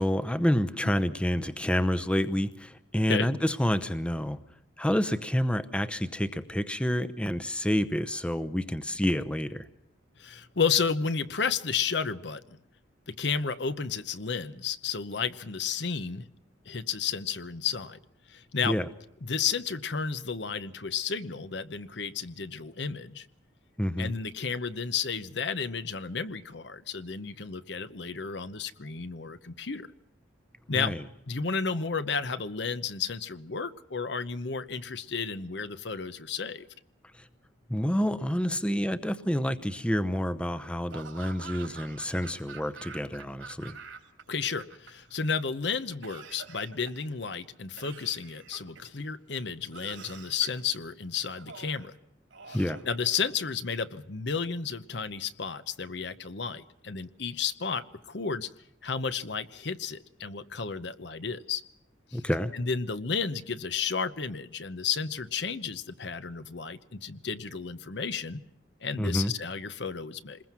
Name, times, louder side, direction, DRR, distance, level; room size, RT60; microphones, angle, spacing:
voice 1, 0.0-4.4 4.8-9.7 18.6-18.9 23.8-24.1 30.7-31.0 37.2-37.3 37.7-43.8 52.5-52.8 62.1-62.5 69.0-69.3, equal, 5° left, 12 dB, 0.8 m, -28 dB
voice 2, 10.2-12.6 13.1-16.3 16.7-18.0 18.3-18.8 19.2-23.3 24.0-29.9 30.7-31.0 31.3-36.7 44.3-51.9 52.5-58.5 58.8-61.6 62.1-62.2 62.5-68.4 68.8-70.4, left 6 dB, 60° left, 12 dB, 0.9 m, -32 dB
Laughter / Cough, 40.9-44.2 44.5-45.3 46.0-47.1 47.8-49.0 49.7-50.6 51.3-51.9 52.3-53.5, right 5 dB, 85° right, 3.4 m, -47 dB
27.5 x 21.0 x 6.0 m, 0.82 s
head